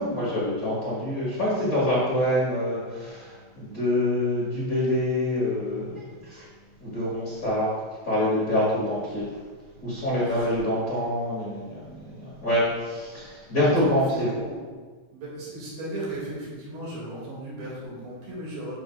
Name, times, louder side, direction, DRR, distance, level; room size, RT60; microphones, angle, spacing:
voice 1, 0.0-6.5 6.8-7.7 8.0-9.3 9.8-11.9 12.2-14.3, left 1 dB, 50° left, -9 dB, 1.0 m, -26 dB
voice 2, 13.6-14.7 15.1-18.7, right 1 dB, 65° right, -5 dB, 3.9 m, -36 dB
10.5 x 5.9 x 2.3 m, 1.4 s
omnidirectional pair, 4.7 m